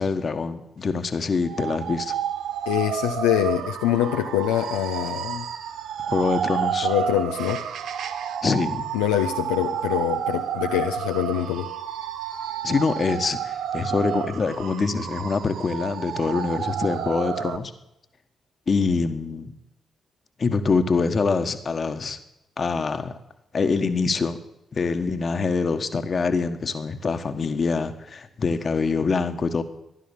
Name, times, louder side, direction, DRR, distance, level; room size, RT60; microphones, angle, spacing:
voice 1, 0.0-2.1 6.0-6.9 8.4-8.9 12.6-17.7 18.7-19.5 20.4-22.2 22.6-23.2 23.5-24.4 24.7-29.6, left 4 dB, 45° left, 9 dB, 1.5 m, -25 dB
sound 1, 1.4-17.6, right 9 dB, 65° right, 0.8 m, -30 dB
voice 2, 2.7-5.4 6.8-7.6 8.9-11.7, left 12 dB, 80° left, 4 dB, 0.7 m, -24 dB
15.0 x 11.5 x 7.2 m, 0.85 s
hypercardioid pair, 40°, 0 cm